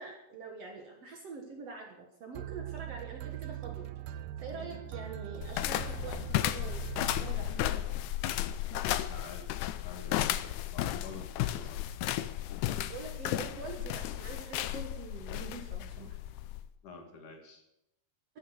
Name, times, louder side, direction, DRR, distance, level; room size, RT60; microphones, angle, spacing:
voice 1, 0.0-3.9 4.4-7.8 12.8-16.2, right 4 dB, 55° right, 2 dB, 2.1 m, -45 dB
sound 1, 2.4-8.0, right 13 dB, 85° right, 1.8 m, -42 dB
sound 2, 5.4-16.7, left 13 dB, 85° left, 1.7 m, -34 dB
voice 2, 9.1-9.5 9.8-11.8 16.8-17.6, left 4 dB, 60° left, 3 dB, 3.3 m, -48 dB
14.5 x 10.5 x 6.5 m, 0.88 s
omnidirectional pair, 4.3 m